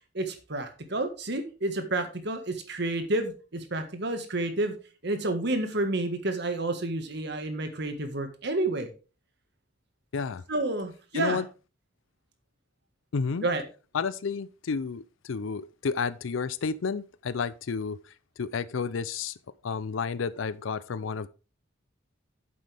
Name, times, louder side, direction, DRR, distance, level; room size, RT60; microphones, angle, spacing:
voice 1, 0.1-4.7 5.0-8.9 10.5-11.4 13.4-13.6, right 2 dB, 60° right, 1.6 m, -30 dB
voice 2, 10.1-10.4 11.1-11.4 13.1-13.5 13.9-18.0 18.4-19.3 19.6-21.3, left 5 dB, 85° left, 0.5 m, -31 dB
9.3 x 7.7 x 3.4 m
head